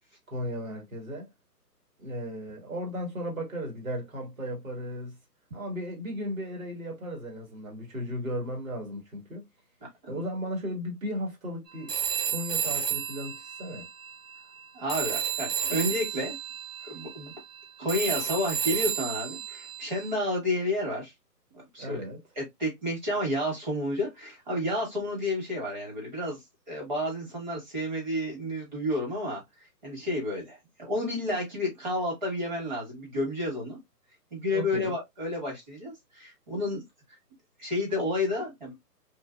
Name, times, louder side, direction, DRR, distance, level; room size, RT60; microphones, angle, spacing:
voice 1, 0.3-1.3 2.0-5.1 5.5-9.5 10.1-11.9 12.2-13.9 21.8-22.2 34.5-34.9, equal, 55° right, 1.4 m, -35 dB
Telephone, 11.9-14.6 14.9-20.1, right 8 dB, 75° right, 1.1 m, -32 dB
voice 2, 14.7-16.3 16.8-17.3 17.8-21.1 21.7-22.0 22.4-26.4 26.7-29.4 29.8-33.8 34.3-36.8 37.6-38.7, left 1 dB, 30° right, 1.3 m, -31 dB
2.9 x 2.6 x 2.2 m
hypercardioid pair, 165°, 49 cm